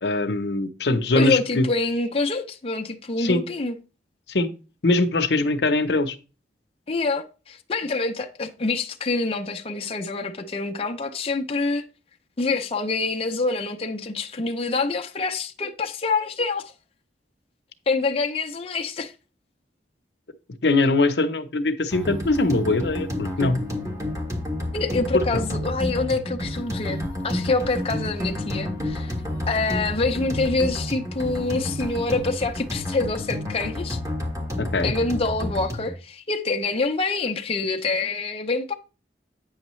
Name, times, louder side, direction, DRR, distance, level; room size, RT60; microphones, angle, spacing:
voice 1, 0.0-1.7 3.2-3.4 4.3-4.5 4.8-6.2 20.6-23.6 25.1-25.4 34.6-34.9, left 2 dB, 70° left, 0.7 m, -22 dB
voice 2, 1.1-3.7 6.9-11.8 12.4-16.7 17.9-19.1 24.7-29.1 29.5-34.0 34.8-38.7, left 3 dB, 35° left, 0.6 m, -26 dB
sound 1, 21.9-35.9, left 1 dB, 20° right, 1.5 m, -30 dB
8.8 x 6.4 x 3.1 m
head